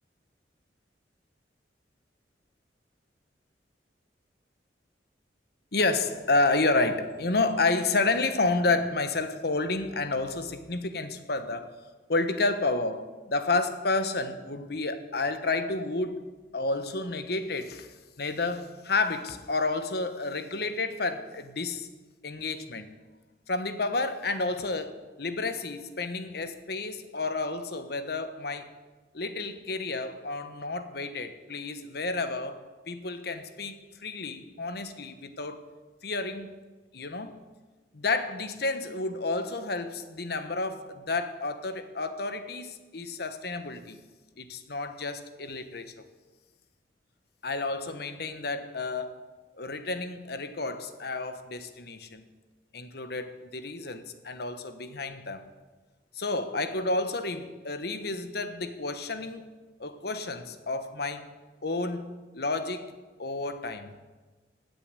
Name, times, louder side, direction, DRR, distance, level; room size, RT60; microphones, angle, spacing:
voice 1, 5.7-11.7 12.1-16.2 16.5-21.9 22.2-23.0 23.5-28.7 29.1-35.7 36.0-36.6 36.9-37.4 37.9-44.0 44.4-45.9 47.4-49.3 49.6-52.3 52.7-55.5 56.1-59.5 59.8-61.3 61.6-62.9 63.2-63.9, left 3 dB, 60° left, 10 dB, 1.2 m, -30 dB
17.0 x 6.9 x 9.4 m, 1.3 s
head